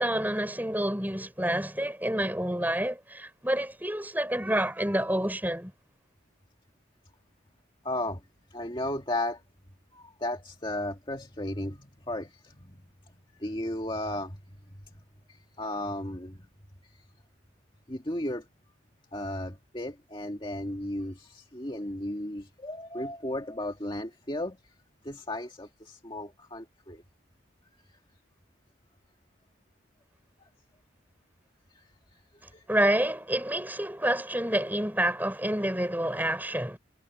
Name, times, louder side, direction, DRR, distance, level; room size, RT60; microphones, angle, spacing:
voice 1, 0.0-5.7 32.7-36.8, right 1 dB, 10° right, 5.2 m, -28 dB
voice 2, 7.8-8.2 8.5-9.4 9.9-12.8 13.3-14.4 15.3-16.4 17.9-18.5 19.1-24.6 25.0-27.0 31.8-31.9 32.5-32.6, left 1 dB, 25° left, 2.0 m, -35 dB
head